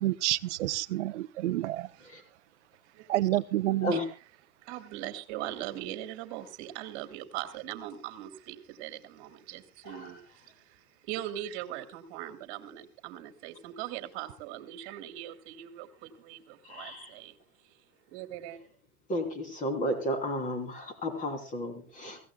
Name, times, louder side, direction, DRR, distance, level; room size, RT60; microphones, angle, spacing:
voice 1, 0.0-1.8 3.1-3.9, right 15 dB, 50° right, 0.8 m, -28 dB
voice 2, 1.8-2.1 2.9-3.3 3.9-4.0 4.6-17.4 18.1-18.6, right 13 dB, 35° right, 2.3 m, -41 dB
voice 3, 16.7-17.1 19.1-22.2, equal, 15° left, 3.3 m, -33 dB
24.0 x 16.5 x 2.3 m
hypercardioid pair, 155°, 44 cm